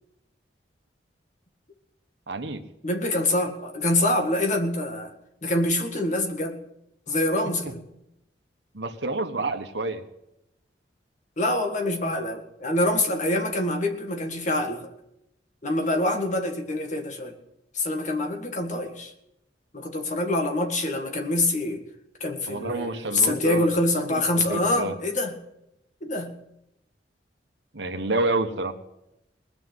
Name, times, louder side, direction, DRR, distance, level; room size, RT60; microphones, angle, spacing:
voice 1, 2.3-2.6 8.7-10.0 22.5-23.7 24.1-24.2 24.5-25.0 27.7-28.7, right 2 dB, 80° right, 7 dB, 1.5 m, -28 dB
voice 2, 2.8-5.1 5.4-6.6 7.1-7.9 11.4-14.9 15.6-17.3 17.7-19.1 19.7-21.8 22.2-25.4 26.0-26.4, left 1 dB, 45° left, 4 dB, 1.9 m, -25 dB
20.0 x 6.8 x 9.8 m, 0.85 s
head